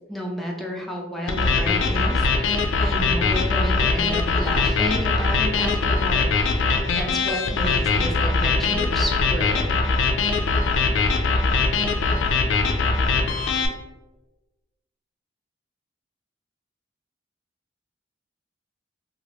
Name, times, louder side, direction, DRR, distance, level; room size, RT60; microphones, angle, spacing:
voice 1, 0.1-6.7 6.9-9.7, equal, ahead, -1 dB, 0.4 m, -31 dB
sound 1, 1.3-13.7, left 3 dB, 85° left, 0.4 m, -21 dB
2.9 x 2.4 x 3.0 m, 1.1 s
head